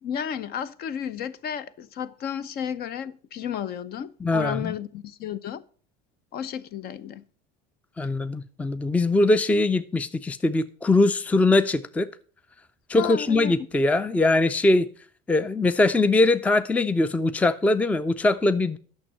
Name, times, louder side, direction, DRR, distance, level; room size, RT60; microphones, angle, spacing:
voice 1, 0.0-5.6 6.3-7.2 13.0-13.5, left 8 dB, 50° left, 0.7 m, -33 dB
voice 2, 4.2-4.7 8.0-12.1 12.9-14.9 15.3-18.8, left 2 dB, 5° left, 0.4 m, -22 dB
8.9 x 6.4 x 5.6 m
supercardioid pair, 100°, 21 cm